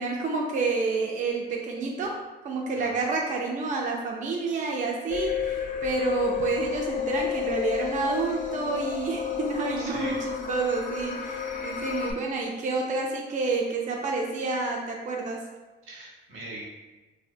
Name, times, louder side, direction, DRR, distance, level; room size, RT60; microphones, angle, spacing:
voice 1, 0.0-2.2 2.4-15.4, right 3 dB, 40° right, 0 dB, 0.4 m, -29 dB
sound 1, 5.1-12.1, left 8 dB, 40° left, 0.4 m, -31 dB
voice 2, 9.8-10.2 15.8-16.7, right 2 dB, 85° right, -3 dB, 0.8 m, -41 dB
2.9 x 2.1 x 2.6 m, 1.2 s
cardioid pair, 90°, 20 cm